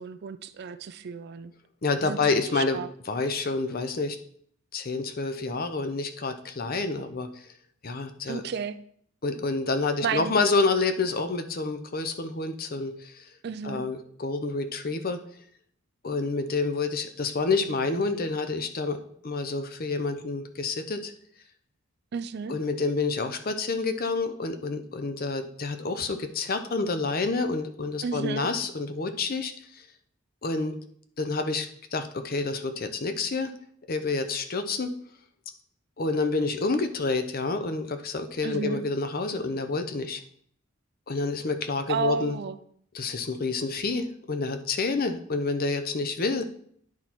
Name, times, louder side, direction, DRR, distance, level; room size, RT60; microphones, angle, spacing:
voice 1, 0.0-1.5 2.0-2.2 2.5-2.9 8.3-8.8 10.0-10.3 13.4-13.8 22.1-22.6 28.0-28.5 38.4-38.8 41.9-42.6, right 5 dB, 50° right, 12 dB, 0.4 m, -32 dB
voice 2, 1.8-2.8 3.1-4.2 4.7-7.4 7.8-8.5 9.2-13.3 13.6-15.2 16.0-19.0 19.2-21.1 22.5-29.9 30.4-30.8 31.2-33.5 33.9-34.9 36.0-40.2 41.1-42.4 42.9-46.5, left 3 dB, 45° left, 9 dB, 0.7 m, -28 dB
9.7 x 4.4 x 4.2 m, 0.63 s
head